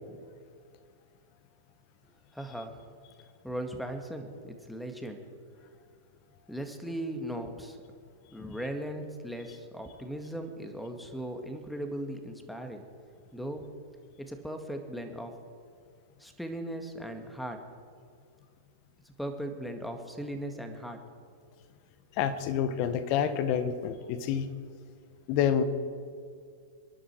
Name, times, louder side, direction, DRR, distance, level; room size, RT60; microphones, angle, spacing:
voice 1, 2.3-2.8 3.4-5.2 6.5-7.8 8.3-12.8 13.3-13.7 14.2-15.3 16.2-17.6 19.2-21.0, right 1 dB, ahead, 5 dB, 2.0 m, -38 dB
voice 2, 22.2-24.5 25.3-25.6, left 8 dB, 45° left, 10 dB, 1.4 m, -28 dB
26.0 x 11.5 x 4.8 m, 2.2 s
figure-of-eight pair, 100°, 0 cm